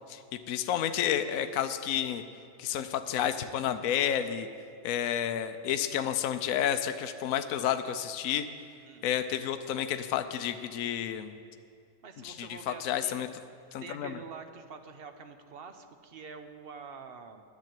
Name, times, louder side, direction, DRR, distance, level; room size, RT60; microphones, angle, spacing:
voice 1, 0.5-2.2 2.6-4.5 4.8-8.5 9.0-11.3 12.2-13.3 13.7-14.2, left 10 dB, 70° left, 9 dB, 1.0 m, -30 dB
voice 2, 12.0-13.3 13.8-17.4, right 5 dB, 50° right, 7 dB, 0.8 m, -46 dB
10.5 x 7.3 x 9.0 m, 2.4 s
omnidirectional pair, 1.6 m